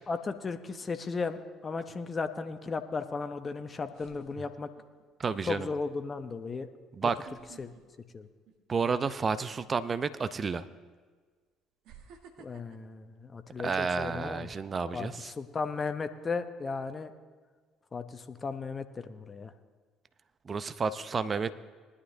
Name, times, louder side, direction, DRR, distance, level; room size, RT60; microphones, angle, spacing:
voice 1, 0.1-4.7 5.5-6.7 7.0-7.1 7.6-7.7 8.1-8.3 12.4-14.5 14.9-17.1 17.9-19.5, left 4 dB, 30° left, 9 dB, 0.9 m, -35 dB
sound 1, 0.8-1.3 3.2-3.3 3.9-5.0 5.5-5.7 7.0-8.9 9.3-9.5 10.5-10.6 11.8-14.1 14.5-14.8, right 6 dB, 65° right, 1.1 m, -55 dB
voice 2, 5.2-5.7 6.9-7.3 8.7-10.6 13.6-15.3 20.5-21.5, right 5 dB, 35° right, 13 dB, 0.6 m, -31 dB
20.0 x 11.5 x 2.7 m, 1.5 s
figure-of-eight pair, 55°, 0 cm